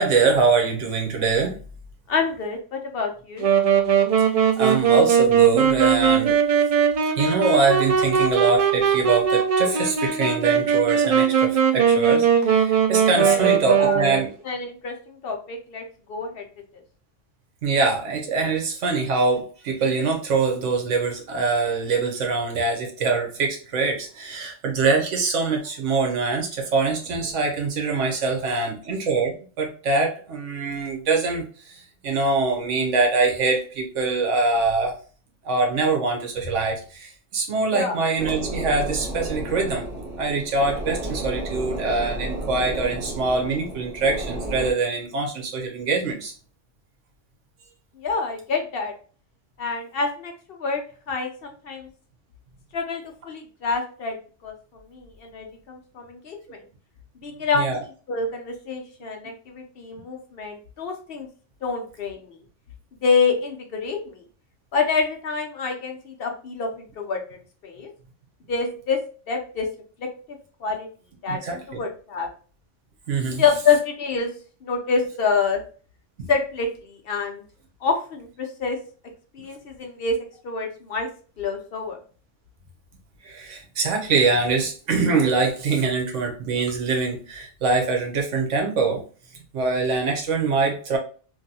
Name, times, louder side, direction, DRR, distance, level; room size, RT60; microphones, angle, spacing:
voice 1, 0.0-1.6 4.6-6.3 7.2-14.3 17.6-34.9 35.4-39.8 40.2-46.3 57.5-57.8 71.3-71.8 73.1-73.4 83.2-89.0 89.5-91.0, right 4 dB, 85° right, 1 dB, 1.2 m, -23 dB
voice 2, 2.1-3.5 13.2-14.2 14.4-16.4 37.7-38.0 48.0-48.9 49.6-50.8 51.1-51.9 52.7-54.2 54.4-54.5 54.9-56.6 57.2-57.7 58.1-61.3 61.6-62.4 63.0-64.2 64.7-67.2 67.6-67.9 68.5-69.0 69.3-69.7 70.0-70.9 71.2-72.3 73.3-74.3 74.6-75.6 76.3-77.4 77.8-78.8 79.3-80.2 80.4-81.1 81.4-82.0, left 5 dB, 60° left, 3 dB, 0.7 m, -27 dB
Wind instrument woodwind instrument, 3.4-14.3, right 7 dB, 60° right, 0.4 m, -20 dB
sound 1, 38.2-44.7, right 1 dB, ahead, 0.9 m, -32 dB
3.1 x 2.6 x 2.7 m, 0.39 s
omnidirectional pair, 1.2 m